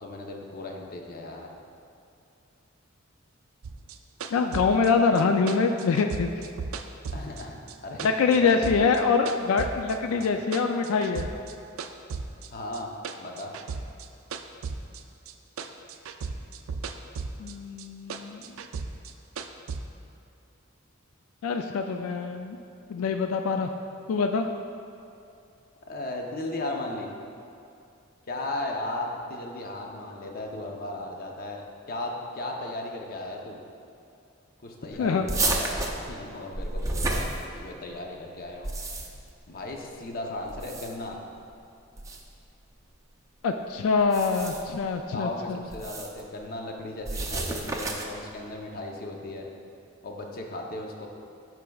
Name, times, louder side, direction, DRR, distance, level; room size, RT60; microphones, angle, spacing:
voice 1, 0.0-1.5 7.1-8.9 10.1-10.3 12.5-13.5 25.9-27.1 28.3-33.6 34.6-37.3 37.5-38.7 39.5-41.2 45.1-49.5 50.0-51.1, left 2 dB, 45° left, 1 dB, 0.7 m, -36 dB
sound 1, 3.6-7.7 8.0-10.0 10.2-11.5 11.8-15.3 15.6-17.5 17.8-19.8, right 5 dB, 85° right, 0.4 m, -36 dB
voice 2, 4.3-6.3 8.0-11.3 17.4-18.4 21.4-22.6 22.9-23.7 24.1-24.5 35.0-35.2 43.4-45.7, left 5 dB, 90° left, 5 dB, 0.3 m, -24 dB
sound 2, 35.3-37.9 38.5-39.3 40.5-41.1 42.0-42.2 44.0-44.8 45.7-46.2 47.0-48.2, right 2 dB, 15° right, 0.5 m, -31 dB
12.5 x 4.6 x 2.3 m, 2.6 s
head